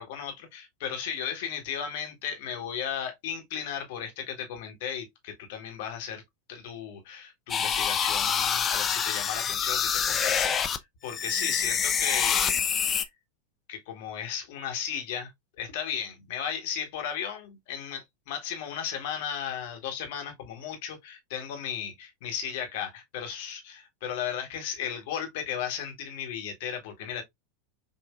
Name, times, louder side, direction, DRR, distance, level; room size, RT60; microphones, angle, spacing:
voice 1, 0.0-6.2 6.5-12.5 13.0-13.1 13.7-27.2, left 8 dB, 55° left, 1.4 m, -35 dB
sound 1, 7.5-10.8 11.1-13.0, left 7 dB, 25° left, 0.5 m, -26 dB
5.7 x 2.5 x 2.3 m
figure-of-eight pair, 85°, 0 cm